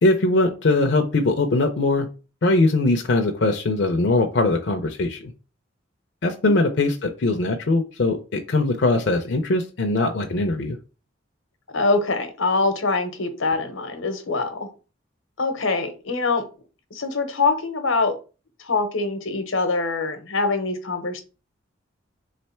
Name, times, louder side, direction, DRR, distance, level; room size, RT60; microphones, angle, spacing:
voice 1, 0.0-2.1 2.4-5.3 6.2-10.8, left 2 dB, 60° left, 3 dB, 0.5 m, -21 dB
voice 2, 11.7-14.7 15.4-16.5 16.9-18.2 18.6-21.2, left 3 dB, 85° left, 8 dB, 0.9 m, -24 dB
3.8 x 3.3 x 4.3 m, 0.34 s
head